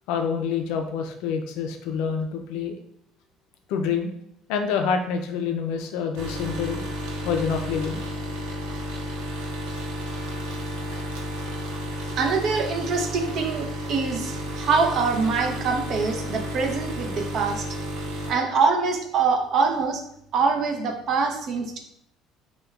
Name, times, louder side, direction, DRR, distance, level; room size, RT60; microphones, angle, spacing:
voice 1, 0.1-2.8 3.7-4.1 4.5-6.8 7.2-8.0 10.9-11.0 18.2-18.4, left 6 dB, 80° left, 5 dB, 0.5 m, -27 dB
sound 1, 6.2-18.3, equal, 90° right, 0.9 m, -32 dB
voice 2, 12.2-17.7 18.3-20.0 20.3-21.8, right 4 dB, 55° right, 4 dB, 0.7 m, -24 dB
6.6 x 2.3 x 2.4 m, 0.71 s
cardioid pair, 105°, 0 cm